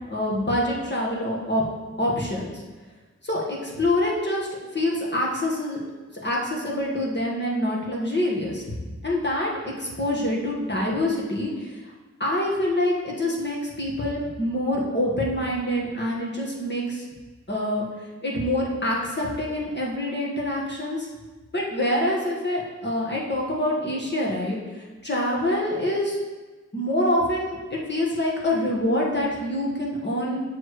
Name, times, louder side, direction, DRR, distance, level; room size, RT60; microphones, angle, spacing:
voice 1, 0.1-1.6 2.0-2.6 3.2-4.5 4.7-5.8 6.2-8.6 9.0-11.8 12.2-17.0 17.5-17.8 18.2-21.1 21.5-26.2 26.7-30.4, left 1 dB, 40° left, -3 dB, 1.7 m, -26 dB
7.2 x 6.4 x 3.3 m, 1.3 s
wide cardioid pair, 60°, 29 cm